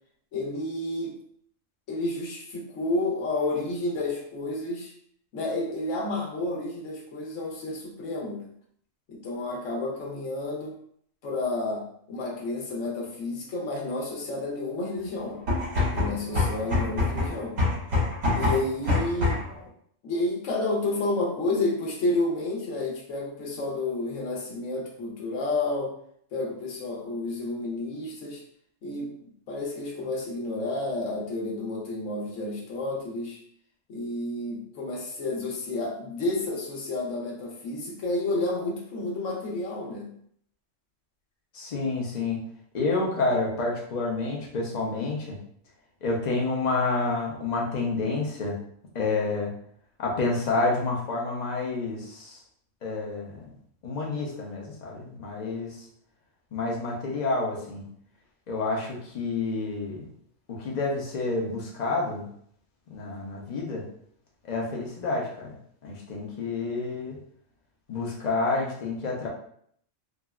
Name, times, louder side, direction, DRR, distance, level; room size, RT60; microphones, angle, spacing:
voice 1, 0.3-1.2 1.9-4.9 5.3-8.5 9.1-10.7 11.2-15.4 15.9-17.6 18.3-19.4 20.0-25.9 26.3-28.4 28.8-29.1 29.5-33.4 33.9-40.1, left 2 dB, 75° left, -2 dB, 1.1 m, -30 dB
sound 1, 15.3-19.6, left 3 dB, 80° right, 1.7 m, -25 dB
voice 2, 41.5-42.4 42.7-45.4 46.0-48.6 48.9-49.5 50.0-52.4 52.8-53.4 53.8-55.8 56.5-57.8 58.5-60.1 60.5-62.2 62.9-63.9 64.4-65.5 65.8-67.2 67.9-69.3, left 3 dB, 45° left, -1 dB, 0.6 m, -29 dB
3.7 x 2.0 x 2.3 m, 0.66 s
omnidirectional pair, 1.3 m